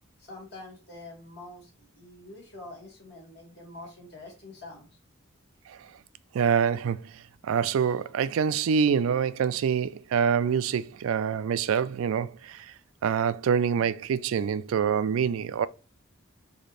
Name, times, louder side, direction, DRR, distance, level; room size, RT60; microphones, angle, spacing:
voice 1, 0.2-4.9, left 2 dB, 55° left, 2.1 m, -46 dB
voice 2, 6.3-7.1 7.4-12.7 13.0-15.7, right 7 dB, 85° right, 0.3 m, -26 dB
4.1 x 2.8 x 3.2 m
head